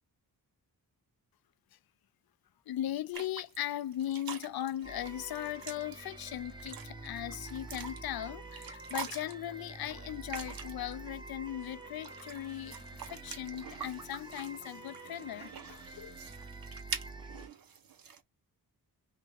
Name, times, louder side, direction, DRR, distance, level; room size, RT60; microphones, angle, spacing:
voice 1, 2.7-16.2, left 12 dB, 65° left, 0.5 m, -38 dB
sound 1, 3.1-11.0 11.7-18.2, right 7 dB, 60° right, 0.9 m, -46 dB
sound 2, 4.8-17.5, right 2 dB, 10° right, 1.2 m, -47 dB
5.6 x 2.2 x 3.4 m
cardioid pair, 55°, 39 cm